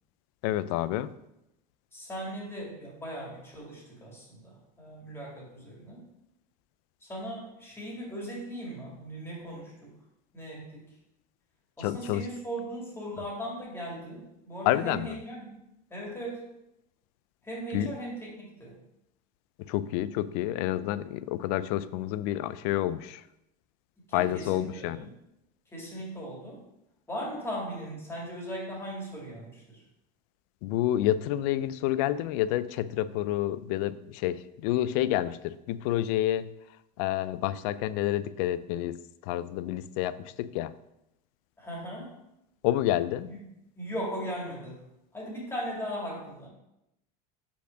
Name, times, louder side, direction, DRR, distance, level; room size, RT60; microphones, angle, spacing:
voice 1, 0.4-1.1 11.8-12.2 14.7-15.2 17.7-17.9 19.6-23.2 24.1-25.0 30.6-36.5 37.0-40.8 42.6-43.3, left 13 dB, 70° left, 16 dB, 0.4 m, -29 dB
voice 2, 1.9-6.0 7.0-10.0 10.3-10.9 11.8-15.6 15.9-16.4 17.4-18.7 24.0-25.1 25.7-26.6 27.1-29.8 41.6-42.1 43.2-43.4 43.8-44.8 45.1-46.5, equal, 10° left, -3 dB, 2.1 m, -38 dB
5.6 x 4.3 x 5.1 m, 0.86 s
supercardioid pair, 140°, 20 cm